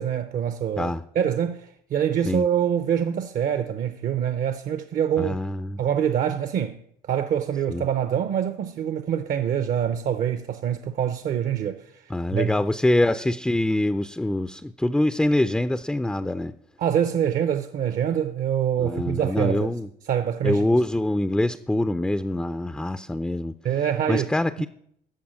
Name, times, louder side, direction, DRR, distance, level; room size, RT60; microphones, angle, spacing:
voice 1, 0.0-5.4 5.8-6.8 7.1-12.5 16.8-19.7 20.1-20.7 23.6-24.3, right 9 dB, 55° right, 0.6 m, -25 dB
voice 2, 5.2-5.8 7.7-7.8 12.1-16.5 18.8-19.9 20.4-23.5 24.1-24.7, left 1 dB, 5° left, 0.4 m, -24 dB
13.0 x 5.0 x 7.4 m
cardioid pair, 110°, 17 cm